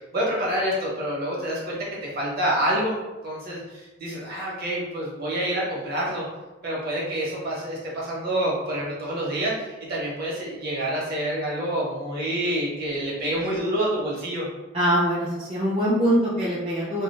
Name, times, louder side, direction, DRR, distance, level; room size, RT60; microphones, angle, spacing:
voice 1, 0.1-1.8 2.1-3.0 3.2-6.2 6.6-14.5, right 1 dB, 50° right, -5 dB, 0.9 m, -27 dB
voice 2, 14.7-17.0, equal, 25° right, -9 dB, 0.4 m, -23 dB
2.4 x 2.1 x 3.2 m, 1.1 s
head